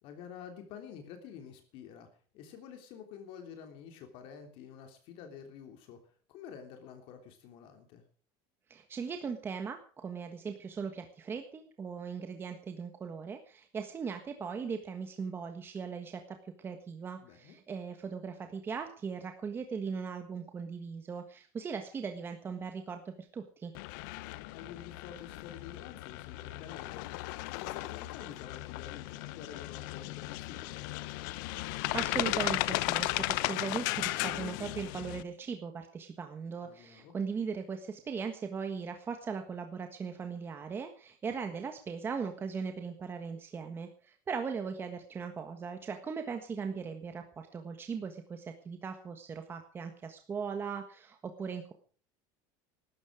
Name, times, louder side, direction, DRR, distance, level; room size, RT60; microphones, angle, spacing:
voice 1, 0.0-2.1 2.3-8.0 17.2-17.6 24.5-27.1 27.6-31.3 36.6-37.1, left 8 dB, 55° left, 5 dB, 3.2 m, -49 dB
voice 2, 8.7-23.7 31.9-51.7, right 5 dB, 20° right, 6 dB, 1.5 m, -39 dB
sound 1, 23.8-35.2, left 20 dB, 80° left, 0.8 m, -36 dB
16.5 x 13.0 x 4.9 m, 0.42 s
cardioid pair, 155°, 11 cm